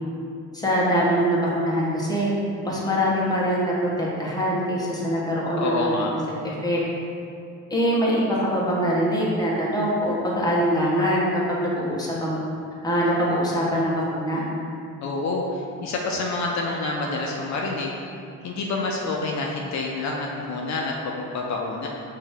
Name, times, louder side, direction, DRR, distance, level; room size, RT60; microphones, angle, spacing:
voice 1, 0.5-2.3 2.6-6.8 7.7-12.4 12.8-14.4, equal, 15° left, -6 dB, 1.1 m, -23 dB
voice 2, 5.6-6.1 15.0-18.0 18.4-21.9, left 3 dB, 65° left, -1 dB, 0.6 m, -27 dB
5.3 x 2.8 x 3.5 m, 2.4 s
cardioid pair, 90°, 30 cm